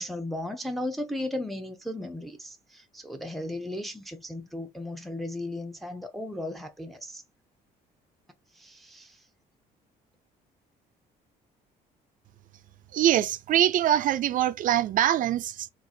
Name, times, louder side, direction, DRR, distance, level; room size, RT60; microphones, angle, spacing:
voice 1, 0.0-7.2 8.5-9.2, left 1 dB, ahead, 0.6 m, -35 dB
voice 2, 12.9-15.7, right 11 dB, 50° right, 0.4 m, -23 dB
3.8 x 2.4 x 2.8 m
cardioid pair, 110°, 17 cm